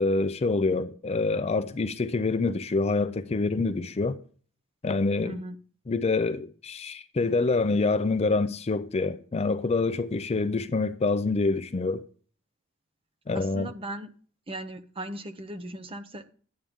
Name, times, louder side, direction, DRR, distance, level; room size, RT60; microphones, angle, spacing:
voice 1, 0.0-4.2 4.8-5.4 5.9-12.0 13.3-13.7, left 3 dB, 30° left, 0.4 m, -26 dB
voice 2, 5.2-5.6 13.3-14.1 14.5-16.3, right 1 dB, 25° right, 0.8 m, -38 dB
10.5 x 8.6 x 3.5 m
head